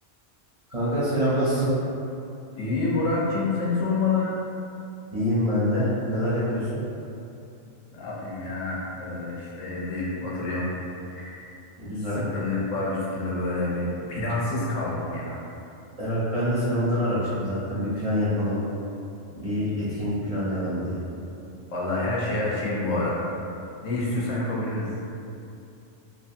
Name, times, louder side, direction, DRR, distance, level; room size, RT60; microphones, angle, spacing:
voice 1, 0.7-1.7 5.1-6.8 11.8-12.2 16.0-18.6 19.3-21.0, equal, 45° right, -11 dB, 0.5 m, -25 dB
voice 2, 2.6-4.4 7.9-10.7 11.1-11.5 12.1-15.4 21.7-23.2 23.8-24.9, left 2 dB, 90° left, -5 dB, 1.0 m, -27 dB
2.9 x 2.3 x 2.6 m, 2.7 s
omnidirectional pair, 1.3 m